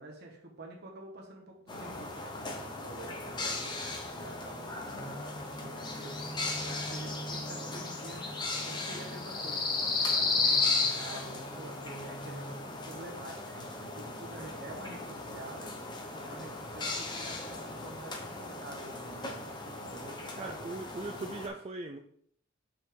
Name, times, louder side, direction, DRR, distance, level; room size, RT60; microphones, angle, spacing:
voice 1, 0.0-3.8 4.1-15.7 16.1-20.6, right 2 dB, 55° right, 0 dB, 1.4 m, -48 dB
sound 1, 1.7-21.5, left 3 dB, 20° left, 0.9 m, -35 dB
voice 2, 20.4-22.0, right 2 dB, 30° right, 4 dB, 0.4 m, -39 dB
5.4 x 5.3 x 3.8 m, 0.63 s
head